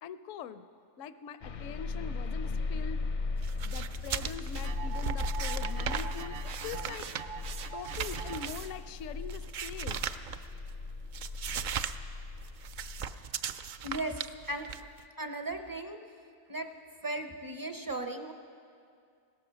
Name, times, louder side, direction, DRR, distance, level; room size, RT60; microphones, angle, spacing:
voice 1, 0.0-0.7 1.0-3.0 3.6-6.4 6.6-7.1 7.7-10.0, left 7 dB, 75° left, 12 dB, 0.9 m, -43 dB
sound 1, 1.4-13.1, left 3 dB, 50° left, 0.5 m, -37 dB
sound 2, 3.4-10.7 11.1-12.0 12.2-15.0, right 7 dB, 80° right, 0.4 m, -38 dB
sound 3, 4.5-8.9, right 7 dB, 55° right, 0.7 m, -43 dB
voice 2, 13.8-14.7 15.2-16.0 16.5-16.7 17.0-18.3, right 2 dB, 25° right, 6 dB, 0.5 m, -36 dB
16.5 x 13.5 x 6.2 m, 2.3 s
omnidirectional pair, 1.4 m